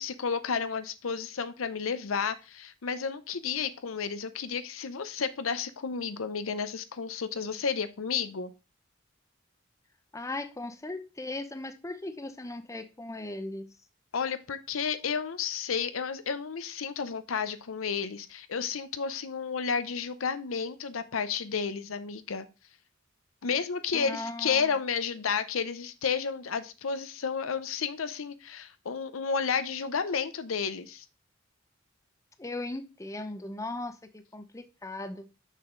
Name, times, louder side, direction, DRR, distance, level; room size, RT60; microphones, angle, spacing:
voice 1, 0.0-8.5 14.1-22.5 23.4-31.1, left 6 dB, 85° left, 12 dB, 0.7 m, -32 dB
voice 2, 10.1-13.7 23.9-24.8 32.4-35.3, left 2 dB, 15° left, 9 dB, 0.7 m, -38 dB
6.5 x 6.2 x 3.8 m, 0.30 s
head